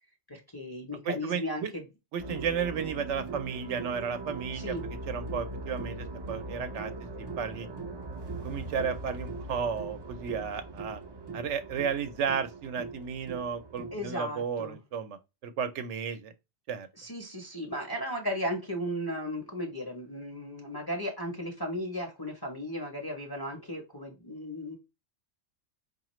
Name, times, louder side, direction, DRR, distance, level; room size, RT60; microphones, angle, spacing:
voice 1, 0.3-1.8 4.5-4.8 13.9-14.8 17.0-24.8, equal, 25° left, 0.5 m, -35 dB
voice 2, 1.1-1.7 2.1-4.8 5.1-6.9 7.4-7.7 8.4-11.0 11.3-15.2 15.4-16.3 16.7-16.9, right 6 dB, 75° right, 0.9 m, -33 dB
sound 1, 2.2-14.1, right 2 dB, 35° right, 0.4 m, -40 dB
4.8 x 2.4 x 3.0 m
omnidirectional pair, 1.2 m